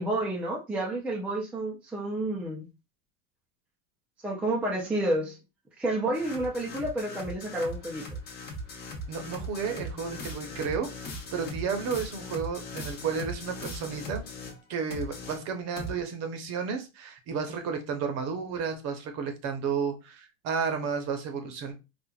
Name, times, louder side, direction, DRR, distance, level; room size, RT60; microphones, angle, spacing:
voice 1, 0.0-2.7 4.2-5.4 5.8-8.0, right 1 dB, 5° right, 0.5 m, -30 dB
sound 1, 6.1-14.6 14.9-16.0, left 1 dB, 25° left, 0.9 m, -39 dB
voice 2, 9.1-14.2 14.7-21.7, right 6 dB, 40° right, 0.9 m, -32 dB
4.3 x 2.5 x 2.3 m
supercardioid pair, 145°, 40 cm